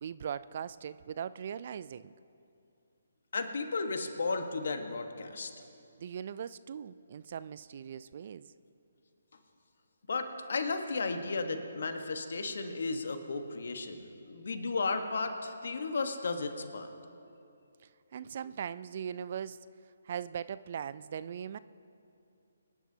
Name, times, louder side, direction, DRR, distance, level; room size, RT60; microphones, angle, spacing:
voice 1, 0.0-2.1 6.0-8.5 17.8-19.6 20.0-21.6, right 8 dB, 50° right, 16 dB, 0.3 m, -40 dB
voice 2, 3.3-5.5 10.1-16.9, left 3 dB, 65° left, 6 dB, 1.3 m, -34 dB
24.5 x 11.0 x 2.8 m, 2.6 s
figure-of-eight pair, 145°, 0 cm